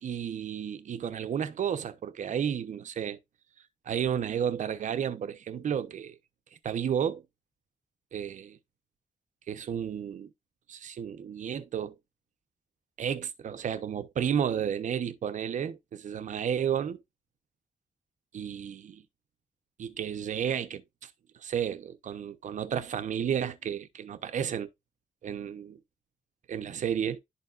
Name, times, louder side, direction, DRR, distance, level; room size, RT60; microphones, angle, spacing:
voice 1, 0.0-3.2 3.9-6.2 6.6-7.2 8.1-8.6 9.5-10.3 10.7-11.9 13.0-17.0 18.3-19.0 19.8-21.1 21.4-24.7 25.2-25.8 26.5-27.2, right 8 dB, 85° right, 0.9 m, -32 dB
11.5 x 4.2 x 2.5 m
cardioid pair, 95°, 12 cm